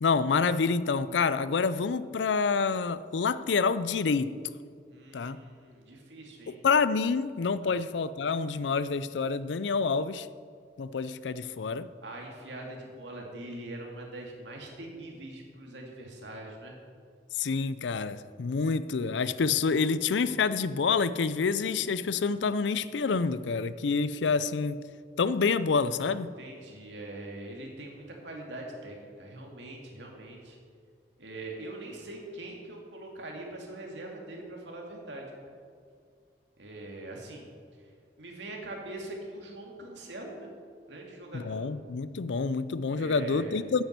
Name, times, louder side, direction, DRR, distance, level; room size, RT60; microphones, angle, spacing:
voice 1, 0.0-4.4 5.1-5.4 6.5-10.3 10.8-11.9 17.4-24.8 25.2-26.3 41.3-43.8, left 5 dB, 90° left, 0.5 m, -27 dB
voice 2, 4.9-6.6 7.6-7.8 12.0-16.7 19.2-19.4 26.4-30.6 31.2-35.3 36.6-37.5 37.8-37.9 38.2-40.5 40.9-41.7 42.9-43.6, right 2 dB, 90° right, 2.5 m, -42 dB
9.3 x 8.8 x 8.1 m
head